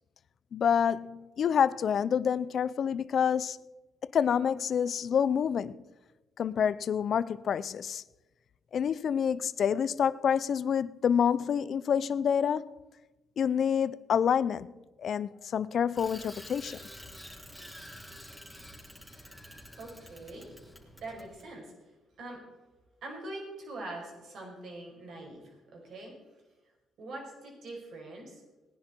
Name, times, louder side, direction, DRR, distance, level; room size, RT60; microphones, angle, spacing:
voice 1, 0.5-3.6 4.0-5.8 6.4-8.0 8.7-12.7 13.4-14.7 15.0-16.8, left 8 dB, 60° left, 0.6 m, -28 dB
Bicycle, 16.0-21.5, equal, 5° right, 3.8 m, -48 dB
voice 2, 19.8-20.5 21.0-21.7 22.2-22.4 23.0-26.1 27.0-28.4, right 2 dB, 65° right, 5.4 m, -43 dB
19.0 x 10.5 x 4.5 m
cardioid pair, 90°, 0 cm